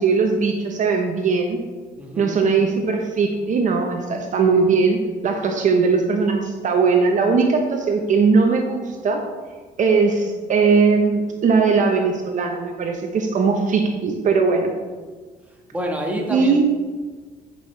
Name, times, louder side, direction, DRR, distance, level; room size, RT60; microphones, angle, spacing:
voice 1, 0.0-1.6 2.2-9.2 9.8-14.7 16.3-16.6, right 4 dB, 50° right, 3 dB, 0.9 m, -19 dB
voice 2, 2.0-2.4 15.7-16.6, equal, 10° right, 0 dB, 1.3 m, -27 dB
9.1 x 5.5 x 3.3 m, 1.4 s
cardioid pair, 110°, 17 cm